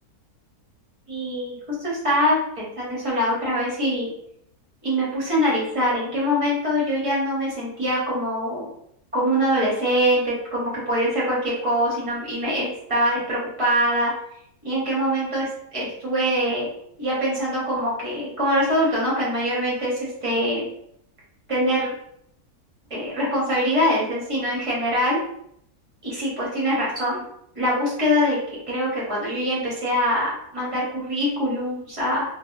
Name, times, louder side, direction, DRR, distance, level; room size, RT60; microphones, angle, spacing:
voice 1, 1.1-4.1 4.8-8.7 9.1-14.1 14.6-15.5 15.7-16.7 17.0-20.6 21.5-21.9 22.9-25.2 26.0-27.2 27.5-28.4 28.7-32.2, equal, 30° right, -6 dB, 0.6 m, -23 dB
2.7 x 2.1 x 2.2 m, 0.72 s
omnidirectional pair, 1.6 m